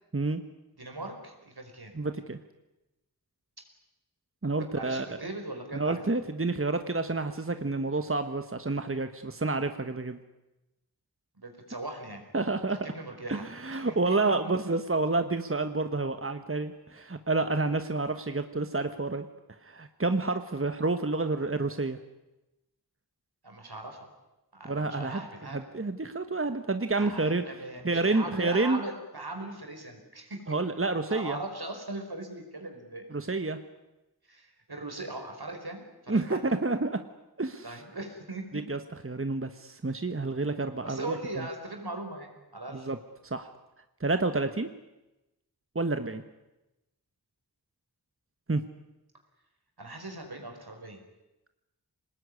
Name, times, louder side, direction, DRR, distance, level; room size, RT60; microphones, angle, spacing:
voice 1, 0.8-2.0 4.7-5.9 11.4-12.2 12.8-13.5 13.8-14.3 23.4-24.1 24.5-25.6 27.0-30.4 31.1-33.0 34.3-36.4 37.6-38.6 40.8-42.9 49.8-51.0, right 2 dB, 75° right, 3 dB, 5.1 m, -39 dB
voice 2, 1.9-2.4 4.4-5.1 5.7-10.2 12.3-12.8 13.3-19.3 19.6-22.0 24.7-27.4 27.8-28.8 30.5-31.4 33.1-33.6 36.1-37.0 37.4-37.8 38.5-41.2 42.7-43.0 43.2-43.5 44.0-44.7 45.7-46.2 48.5-48.6, right 3 dB, 35° right, 9 dB, 1.3 m, -29 dB
26.0 x 19.5 x 9.8 m, 0.99 s
wide cardioid pair, 50°, 38 cm